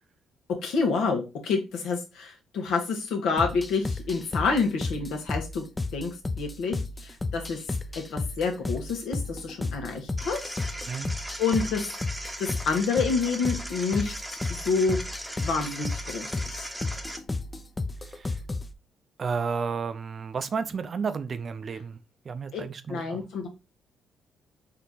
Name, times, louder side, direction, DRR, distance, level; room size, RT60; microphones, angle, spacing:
voice 1, 0.6-5.6 5.9-7.6 7.9-10.5 11.4-11.9 12.4-14.4 14.6-15.0 15.4-16.7 22.5-22.6 22.9-23.5, left 4 dB, 85° left, 1.5 m, -28 dB
sound 1, 3.4-18.7, left 3 dB, 20° left, 0.5 m, -33 dB
sound 2, 10.2-17.2, equal, 5° right, 0.8 m, -38 dB
voice 2, 18.0-18.4 19.2-22.0 22.2-23.2, right 5 dB, 45° right, 0.5 m, -32 dB
4.4 x 3.0 x 4.0 m
cardioid pair, 90°, 0 cm